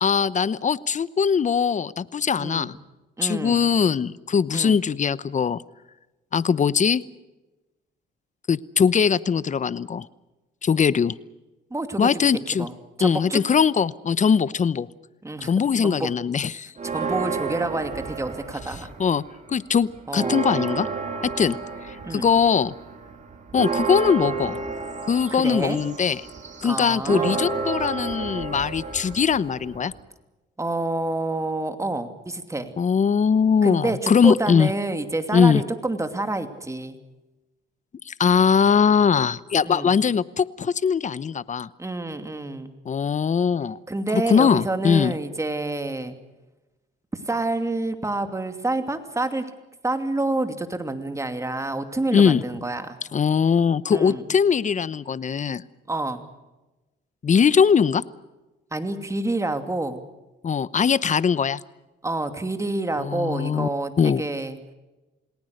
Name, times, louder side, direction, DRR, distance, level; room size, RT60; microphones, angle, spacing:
voice 1, 0.0-2.7 3.2-5.6 6.3-7.0 8.5-10.1 10.6-11.2 12.0-12.7 13.0-14.9 15.4-16.7 19.0-19.2 19.5-20.9 21.2-21.6 21.9-22.7 23.5-24.6 25.1-26.2 26.6-29.9 32.8-34.7 35.3-35.6 38.1-41.7 42.9-43.8 44.1-45.1 52.1-52.4 53.1-55.6 57.2-58.0 60.4-61.6 63.0-63.7 64.0-64.2, left 6 dB, 40° left, 18 dB, 0.9 m, -21 dB
voice 2, 2.4-2.7 3.2-3.6 4.5-4.8 11.7-13.4 15.2-16.1 16.8-18.9 20.1-20.4 22.0-22.3 25.3-25.8 26.6-27.5 30.6-32.7 33.6-37.0 39.6-39.9 41.8-42.7 43.9-46.2 47.3-49.4 49.8-53.0 53.9-54.2 55.9-56.2 58.7-60.0 62.0-64.6, right 2 dB, 15° right, 8 dB, 2.7 m, -28 dB
sound 1, 16.8-19.1 19.5-30.0, right 4 dB, 40° right, 4.0 m, -31 dB
28.5 x 19.0 x 6.6 m, 1.1 s
cardioid pair, 90°, 20 cm